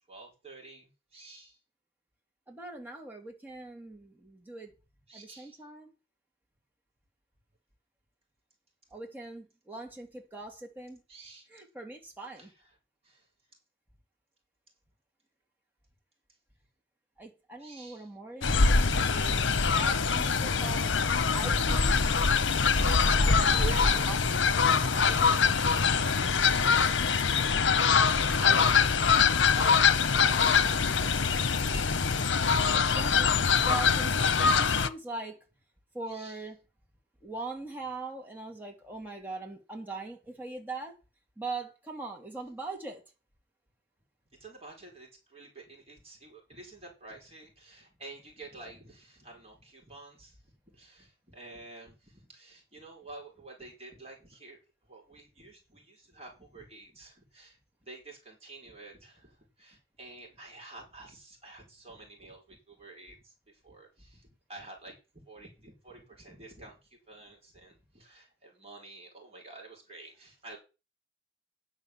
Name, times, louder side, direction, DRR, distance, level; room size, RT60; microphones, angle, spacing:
voice 1, 0.1-1.6 5.1-5.6 11.1-11.6 12.4-12.7 13.0-13.2 17.6-18.1 22.7-23.2 23.5-27.2 28.3-28.9 29.5-31.8 36.1-36.4 44.4-50.3 50.7-54.6 54.9-63.3 63.6-66.8 67.1-70.6, right 2 dB, 30° right, 4.8 m, -47 dB
voice 2, 2.5-4.7 5.1-5.9 8.9-11.0 11.5-12.5 17.2-21.0 21.3-22.1 22.7-23.8 24.1-24.2 28.3-28.8 32.6-35.4 35.9-36.6 37.2-40.9 41.4-43.0, right 3 dB, 10° right, 2.5 m, -41 dB
Fowl, 18.4-34.9, left 5 dB, 75° left, 0.8 m, -24 dB
10.0 x 6.3 x 7.3 m
head